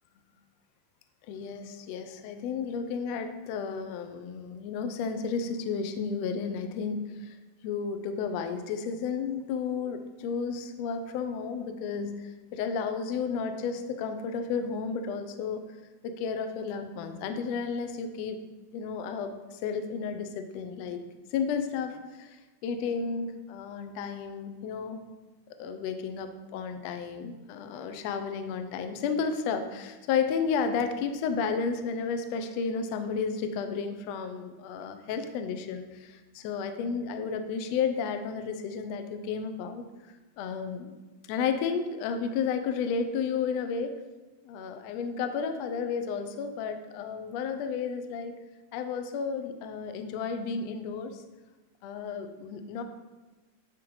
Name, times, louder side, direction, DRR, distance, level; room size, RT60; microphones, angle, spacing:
voice 1, 1.3-7.4 7.6-15.6 16.0-18.4 18.7-25.0 25.6-39.8 40.4-41.0 41.3-44.0 44.4-48.3 48.7-51.2 51.8-52.8, left 6 dB, 80° left, 7 dB, 1.5 m, -32 dB
10.5 x 3.7 x 4.7 m, 1.2 s
omnidirectional pair, 3.7 m